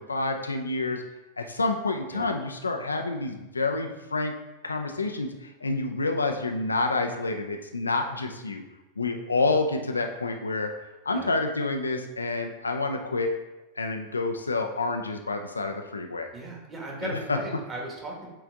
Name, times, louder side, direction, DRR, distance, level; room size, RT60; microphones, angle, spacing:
voice 1, 0.1-1.0 1.4-4.3 4.6-8.6 9.0-10.7 11.1-13.3 13.8-16.3 17.0-17.4, left 3 dB, 80° left, 4 dB, 0.5 m, -28 dB
voice 2, 16.3-18.3, right 2 dB, 20° right, -2 dB, 1.7 m, -37 dB
7.7 x 3.5 x 3.7 m, 1.0 s
figure-of-eight pair, 90°, 0 cm